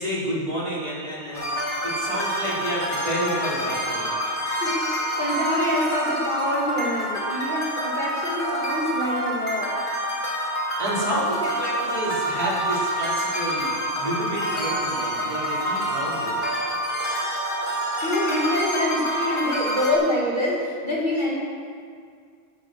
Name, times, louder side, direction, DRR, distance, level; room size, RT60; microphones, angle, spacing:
voice 1, 0.0-1.5 1.8-4.1 10.8-16.4, equal, 30° right, -8 dB, 4.6 m, -29 dB
sound 1, 1.3-19.9, right 1 dB, 70° left, 3.0 m, -27 dB
voice 2, 4.5-9.7 18.0-21.4, left 1 dB, 40° left, -4 dB, 2.3 m, -26 dB
13.0 x 12.5 x 6.7 m, 2.1 s
omnidirectional pair, 1.2 m